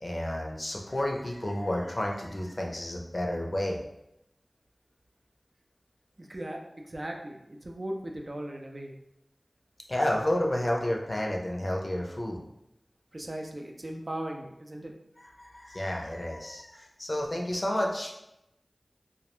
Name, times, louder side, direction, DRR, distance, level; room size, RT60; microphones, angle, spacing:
voice 1, 0.0-3.8 9.9-12.4 15.4-18.1, left 1 dB, 45° left, -1 dB, 0.5 m, -31 dB
voice 2, 6.2-9.0 13.1-14.9, right 1 dB, 50° right, 1 dB, 0.4 m, -38 dB
2.2 x 2.1 x 3.0 m, 0.84 s
wide cardioid pair, 45°, 0 cm